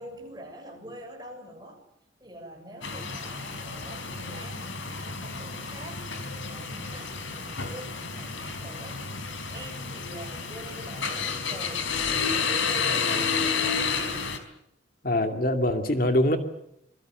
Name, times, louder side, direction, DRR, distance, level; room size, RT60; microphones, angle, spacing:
voice 1, 0.0-1.8 2.2-9.0 9.4-11.9 12.1-13.9, right 1 dB, 20° right, 3 dB, 7.2 m, -45 dB
sound 1, 2.8-14.4, left 5 dB, 85° left, 4.3 m, -31 dB
voice 2, 12.9-13.2 15.0-16.4, left 1 dB, 50° left, 6 dB, 2.4 m, -24 dB
26.5 x 23.0 x 8.0 m, 0.77 s
head